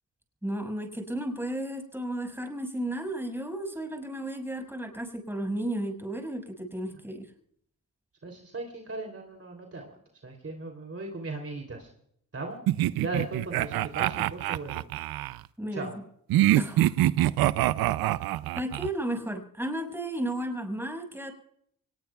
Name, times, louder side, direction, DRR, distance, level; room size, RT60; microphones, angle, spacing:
voice 1, 0.4-7.3 15.6-15.9 16.5-16.9 18.6-21.3, right 1 dB, 5° right, 3 dB, 5.7 m, -33 dB
voice 2, 8.2-10.0 10.2-11.9 12.3-12.6 13.0-14.8 15.7-15.9, right 2 dB, 40° right, 3 dB, 3.1 m, -37 dB
sound 1, 12.7-15.4 16.3-18.9, right 15 dB, 80° right, 0.5 m, -25 dB
24.5 x 20.0 x 2.3 m, 0.67 s
supercardioid pair, 55°, 35 cm